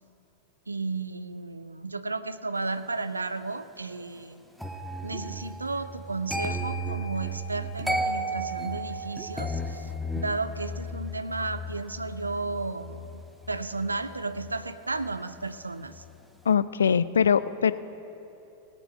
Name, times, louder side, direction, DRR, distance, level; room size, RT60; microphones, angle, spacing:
voice 1, 0.7-4.5 5.0-13.1 13.5-16.0, right 3 dB, 80° right, 13 dB, 0.3 m, -33 dB
sound 1, 4.6-15.6 15.8-16.2, right 1 dB, ahead, 0.8 m, -35 dB
sound 2, 5.1-5.3 6.4-6.6 7.8-7.9 9.2-9.4, right 6 dB, 25° right, 0.9 m, -43 dB
voice 2, 16.5-17.7, left 7 dB, 70° left, 16 dB, 0.3 m, -22 dB
17.5 x 6.0 x 7.1 m, 3.0 s
figure-of-eight pair, 90°, 0 cm